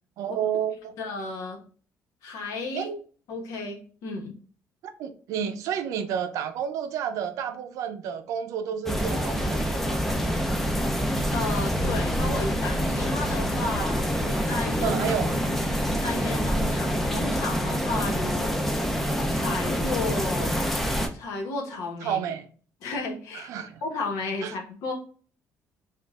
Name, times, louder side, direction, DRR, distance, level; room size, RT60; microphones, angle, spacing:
voice 1, 0.2-0.9 2.7-3.0 4.8-10.0 14.8-15.4 22.0-22.5 23.3-23.8 24.4-24.5, right 8 dB, 75° right, 0.5 m, -30 dB
voice 2, 1.0-1.6 2.2-2.9 3.3-4.4 11.3-14.0 14.2-15.0 16.0-19.0 19.3-20.6 21.1-22.2 22.8-23.5 23.8-24.9, left 3 dB, 80° left, 1.1 m, -33 dB
sound 1, 8.9-21.1, equal, 5° left, 0.4 m, -26 dB
5.2 x 2.4 x 2.4 m
cardioid pair, 170°, 6 cm